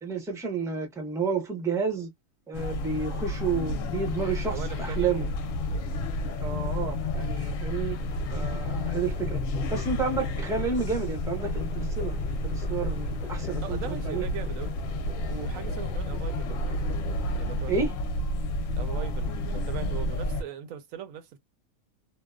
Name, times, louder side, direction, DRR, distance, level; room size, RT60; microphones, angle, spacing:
voice 1, 0.0-2.1 2.5-5.3 6.4-8.0 8.3-9.4 9.7-14.2 17.7-17.9, right 5 dB, 5° right, 0.4 m, -31 dB
sound 1, 2.5-20.4, left 1 dB, 70° left, 0.9 m, -31 dB
voice 2, 4.5-5.3 5.7-5.9 6.3-6.4 13.6-14.7 15.3-17.0 17.3-17.7 18.8-21.4, right 9 dB, 75° right, 1.0 m, -40 dB
sound 2, 8.0-17.4, equal, 35° left, 0.8 m, -41 dB
2.7 x 2.0 x 2.3 m
omnidirectional pair, 1.5 m